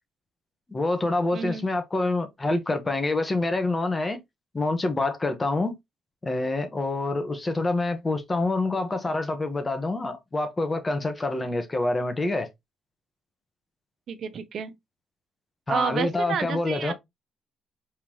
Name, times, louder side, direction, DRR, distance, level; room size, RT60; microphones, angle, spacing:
voice 1, 0.7-4.2 4.5-5.8 6.2-12.5 15.7-16.9, left 2 dB, 20° left, 1.3 m, -26 dB
voice 2, 1.3-1.7 14.1-14.7 15.7-16.9, right 7 dB, 65° right, 0.8 m, -30 dB
4.6 x 3.7 x 3.0 m
cardioid pair, 90°, 0 cm